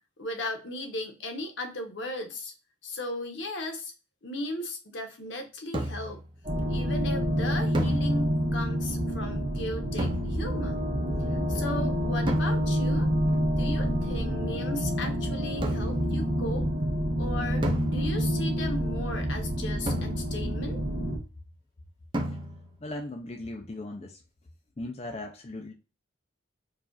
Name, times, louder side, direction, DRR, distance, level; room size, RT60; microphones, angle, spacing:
voice 1, 0.2-2.5 2.8-3.9 4.2-6.2 6.7-10.8 11.3-13.1 13.6-16.7 17.2-20.8, left 1 dB, 70° left, 3 dB, 1.0 m, -36 dB
sound 1, 5.7-6.3 7.7-8.6 10.0-10.8 12.3-13.0 15.6-16.2 17.6-18.5 19.9-20.7 22.1-22.8, equal, 25° right, 0.6 m, -33 dB
sound 2, 6.4-21.2, equal, 40° right, 1.5 m, -28 dB
voice 2, 22.8-24.2 24.8-25.7, left 2 dB, 30° left, 1 dB, 0.4 m, -38 dB
4.7 x 2.5 x 2.4 m, 0.32 s
head